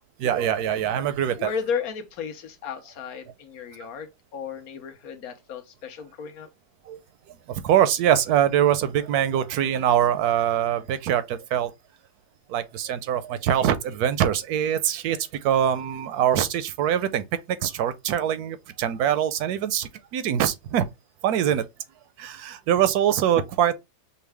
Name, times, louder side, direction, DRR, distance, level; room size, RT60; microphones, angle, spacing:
voice 1, 0.2-1.5 6.9-7.0 7.5-11.7 12.5-20.9 21.2-21.6 22.2-23.7, right 10 dB, 85° right, 1.1 m, -23 dB
voice 2, 1.4-6.5, left 6 dB, 70° left, 1.2 m, -34 dB
5.4 x 2.2 x 3.2 m
omnidirectional pair, 1.6 m